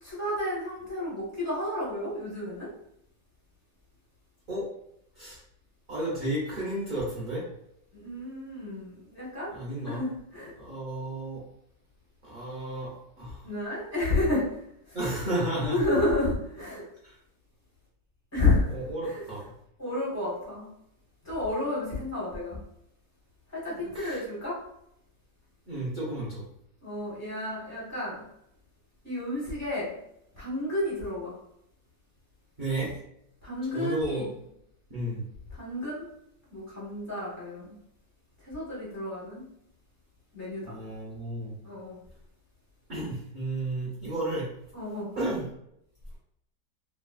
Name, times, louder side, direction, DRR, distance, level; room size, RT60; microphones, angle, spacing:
voice 1, 0.0-2.7 7.9-9.5 9.8-10.5 13.4-14.4 15.6-16.8 18.3-18.7 19.0-19.2 19.8-20.7 21.2-22.6 23.5-24.6 26.8-28.2 29.0-29.9 30.3-31.4 33.4-34.3 35.5-36.1 36.5-37.7 38.4-39.4 40.3-40.7 41.6-42.0 44.7-45.1, left 2 dB, 15° left, -6 dB, 0.7 m, -31 dB
voice 2, 5.9-7.4 9.5-10.0 10.6-11.4 12.2-13.4 14.9-15.8 17.0-17.1 18.7-19.5 23.7-24.2 25.7-26.4 32.6-32.9 33.6-34.3 34.9-35.2 40.6-41.5 42.9-44.5 45.1-45.4, right 1 dB, 60° right, -7 dB, 0.5 m, -32 dB
3.1 x 2.3 x 2.3 m, 0.77 s
omnidirectional pair, 1.9 m